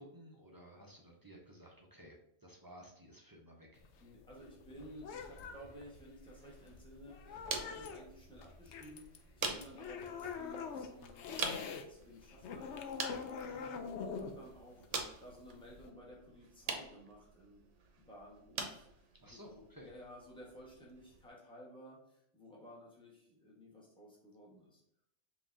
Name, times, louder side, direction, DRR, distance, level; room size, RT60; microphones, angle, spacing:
voice 1, 0.0-2.2 2.4-3.8 13.7-13.8 19.2-19.9, equal, 25° right, 0 dB, 0.5 m, -55 dB
sound 1, 3.7-11.8 12.2-15.9, left 6 dB, 70° left, 0.8 m, -45 dB
voice 2, 4.0-17.6 18.0-18.8 19.5-24.8, equal, 5° left, -4 dB, 1.1 m, -55 dB
sound 2, 6.3-21.3, right 5 dB, 80° right, 1.0 m, -46 dB
5.5 x 3.0 x 2.6 m, 0.77 s
omnidirectional pair, 1.3 m